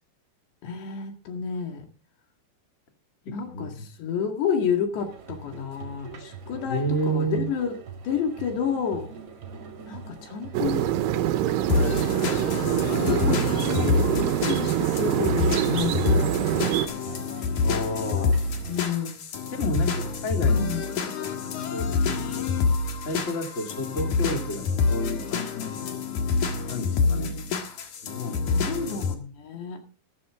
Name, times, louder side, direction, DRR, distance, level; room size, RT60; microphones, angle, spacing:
voice 1, 0.6-1.9 3.3-7.8 8.0-9.1 9.9-10.9 12.5-16.1 18.1-18.3 18.7-19.1 20.5-20.8 27.0-27.6 28.5-29.8, left 7 dB, 75° left, 4 dB, 4.2 m, -30 dB
voice 2, 3.5-3.9 6.6-7.5 17.6-18.4 19.5-20.7 21.2-21.3 21.7-22.4 23.0-25.7 26.7-27.3 28.0-28.7, equal, 25° left, 2 dB, 1.8 m, -30 dB
sound 1, 5.0-18.9, right 5 dB, 45° right, 2.2 m, -43 dB
sound 2, 10.5-16.9, right 12 dB, 75° right, 2.2 m, -25 dB
sound 3, 11.7-29.1, left 4 dB, 55° left, 2.5 m, -27 dB
13.5 x 13.0 x 3.7 m, 0.37 s
omnidirectional pair, 5.0 m